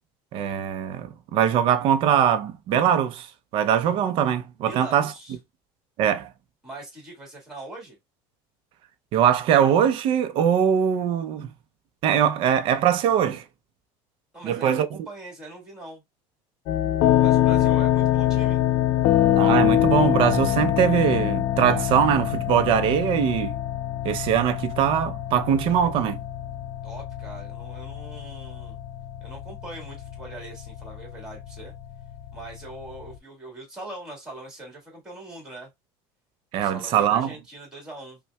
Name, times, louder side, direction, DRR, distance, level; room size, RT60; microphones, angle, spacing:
voice 1, 0.3-3.3 3.5-5.1 6.0-6.3 9.1-11.5 12.0-13.4 14.4-14.9 19.4-23.5 24.0-26.2 36.5-37.3, right 9 dB, 45° right, 0.5 m, -22 dB
voice 2, 4.6-5.4 6.6-8.0 14.3-16.0 17.2-18.6 26.8-28.8 29.2-31.7 32.3-35.7 36.6-38.2, right 2 dB, 5° right, 1.6 m, -41 dB
sound 1, 16.7-33.1, left 12 dB, 55° left, 0.5 m, -25 dB
5.4 x 2.2 x 2.2 m
cardioid pair, 160°, 12 cm